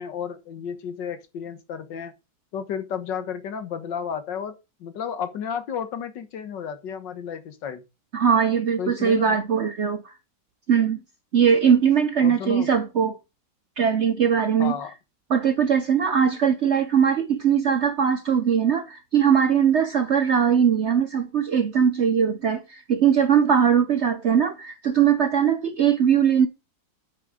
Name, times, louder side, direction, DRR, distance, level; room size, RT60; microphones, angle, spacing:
voice 1, 0.0-2.1 2.5-7.8 8.8-9.4 12.2-12.7 14.6-14.9, left 7 dB, 80° left, 1.9 m, -32 dB
voice 2, 8.1-10.1 10.7-11.0 11.3-13.2 13.8-14.8 15.3-26.5, right 7 dB, 60° right, 0.7 m, -20 dB
8.2 x 6.1 x 4.9 m
omnidirectional pair, 1.9 m